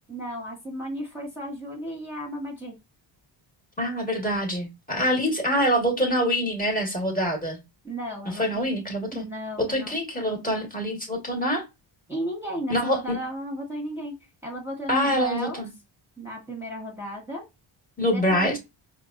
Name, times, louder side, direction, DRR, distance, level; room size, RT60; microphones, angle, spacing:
voice 1, 0.1-2.7 7.8-8.6 9.1-9.9 12.1-14.1 14.4-15.6 16.2-17.4 18.1-18.5, equal, 5° right, 1.2 m, -34 dB
voice 2, 3.8-7.6 8.2-9.3 9.6-11.6 12.7-13.2 14.9-15.7 18.0-18.6, equal, 15° left, 1.3 m, -25 dB
4.6 x 2.3 x 2.5 m
cardioid pair, 90°, 49 cm